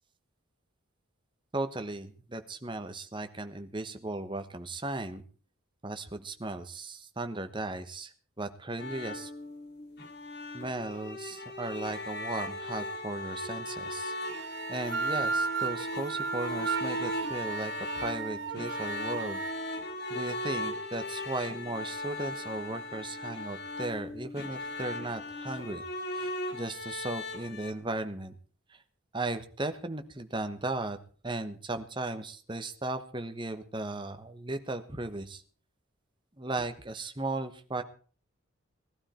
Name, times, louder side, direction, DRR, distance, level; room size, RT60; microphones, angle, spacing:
voice 1, 1.5-5.2 5.8-9.3 10.5-19.4 20.1-25.8 26.1-28.3 29.1-31.0 31.2-35.4 36.4-37.8, right 2 dB, 20° right, 8 dB, 1.1 m, -36 dB
sound 1, 8.8-27.7, left 1 dB, 50° left, 2.6 m, -37 dB
sound 2, 14.2-19.5, right 5 dB, 60° right, 0.9 m, -35 dB
19.5 x 12.5 x 4.4 m, 0.42 s
head